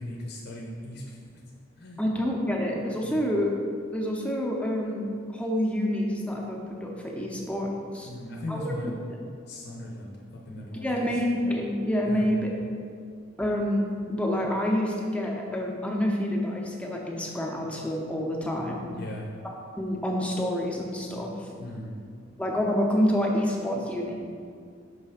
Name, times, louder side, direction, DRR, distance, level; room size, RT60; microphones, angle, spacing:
voice 1, 0.0-1.4 1.8-2.1 3.0-3.3 8.0-9.1 9.5-10.2 10.5-11.1 12.1-12.3 18.9-19.3 21.6-21.9, left 1 dB, 55° left, -2 dB, 0.7 m, -38 dB
voice 2, 2.0-3.6 3.9-5.1 5.3-8.1 8.5-8.9 10.7-12.6 13.4-18.8 19.8-21.5 22.4-24.1, equal, 5° left, -1 dB, 0.6 m, -28 dB
5.5 x 3.2 x 5.7 m, 2.2 s
head